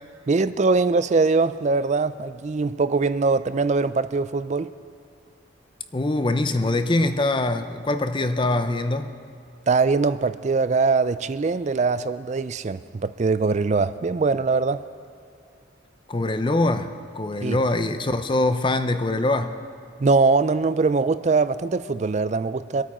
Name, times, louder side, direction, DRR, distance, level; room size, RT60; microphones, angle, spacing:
voice 1, 0.3-4.7 9.7-14.8 17.4-17.6 20.0-22.8, right 4 dB, 35° right, 0.3 m, -22 dB
voice 2, 5.9-9.1 16.1-19.6, left 2 dB, 25° left, 0.5 m, -23 dB
24.5 x 9.1 x 4.3 m
head